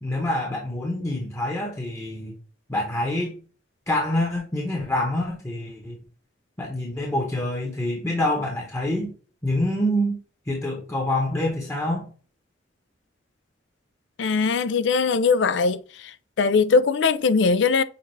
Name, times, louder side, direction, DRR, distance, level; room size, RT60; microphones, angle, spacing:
voice 1, 0.0-2.3 2.7-3.4 3.9-6.0 6.6-9.1 9.4-10.2 10.5-12.1, left 1 dB, 15° left, 0.9 m, -26 dB
voice 2, 14.2-15.8 16.4-17.8, left 4 dB, 70° left, 0.4 m, -20 dB
6.6 x 2.5 x 3.1 m
head